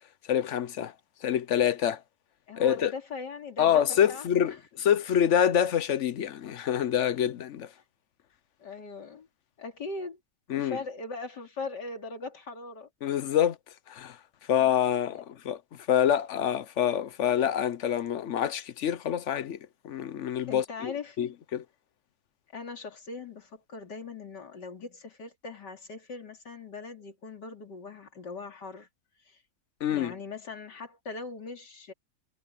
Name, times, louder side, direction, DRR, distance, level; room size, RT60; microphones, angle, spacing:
voice 1, 0.3-0.9 1.2-2.0 2.6-2.9 3.6-7.7 10.5-10.8 13.0-13.6 13.9-14.2 14.5-15.2 15.5-15.6 15.9-19.6 19.8-21.6 29.8-30.1, left 9 dB, 60° left, 0.8 m, -26 dB
voice 2, 2.5-3.8 4.1-4.6 8.6-9.3 9.6-10.2 10.5-12.9 15.1-15.2 20.5-21.3 22.5-28.9 29.2-29.4 29.9-31.9, left 3 dB, 90° left, 3.4 m, -40 dB
omnidirectional pair, 1.8 m